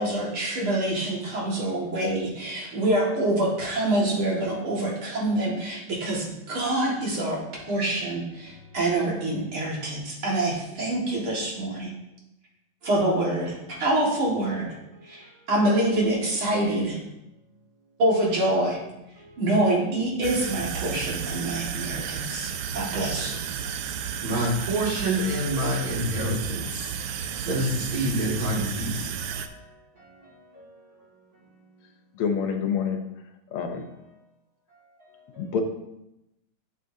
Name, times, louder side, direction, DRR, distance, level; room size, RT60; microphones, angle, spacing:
voice 1, 0.0-11.9 12.8-14.7 15.0-17.0 18.0-18.8 19.4-23.4, right 1 dB, 70° right, -4 dB, 2.8 m, -26 dB
sound 1, 20.2-29.5, right 8 dB, 90° right, 1.5 m, -33 dB
voice 2, 24.2-26.6 27.4-29.0, equal, 45° right, -6 dB, 2.7 m, -26 dB
voice 3, 32.1-33.0 33.5-33.9 35.4-35.6, left 6 dB, 75° left, 5 dB, 1.7 m, -27 dB
11.0 x 6.3 x 2.8 m, 0.88 s
omnidirectional pair, 2.4 m